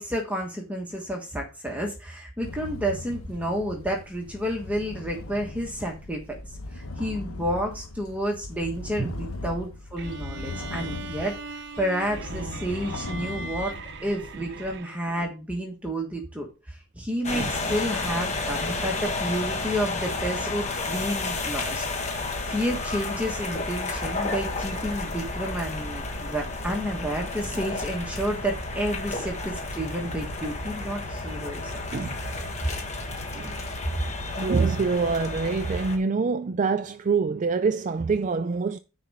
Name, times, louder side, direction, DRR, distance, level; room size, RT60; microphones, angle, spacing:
voice 1, 0.0-11.4 11.8-13.7 14.0-31.7 32.6-32.7, equal, 5° right, 1.3 m, -30 dB
sound 1, 2.4-14.8, left 2 dB, 70° left, 1.0 m, -39 dB
sound 2, 10.0-15.2, right 3 dB, 55° right, 0.8 m, -39 dB
sound 3, 17.2-36.0, left 3 dB, 30° left, 1.3 m, -31 dB
voice 2, 34.4-38.8, right 4 dB, 35° right, 0.3 m, -25 dB
9.9 x 4.2 x 4.9 m
head